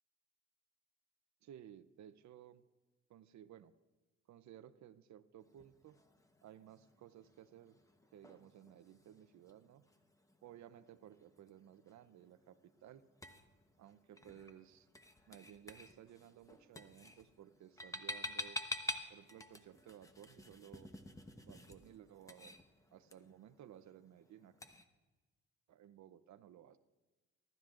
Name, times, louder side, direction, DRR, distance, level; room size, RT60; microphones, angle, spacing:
voice 1, 1.4-2.6 3.1-3.7 4.3-6.0 6.4-7.8 8.1-9.8 10.4-13.1 13.8-14.9 15.3-18.6 19.1-20.9 21.4-22.6 22.9-24.5 25.7-26.8, right 10 dB, 65° right, 13 dB, 0.7 m, -57 dB
sound 1, 5.4-24.8, left 1 dB, 10° left, 1.0 m, -50 dB
23.5 x 12.0 x 2.5 m, 1.2 s
cardioid pair, 90°, 30 cm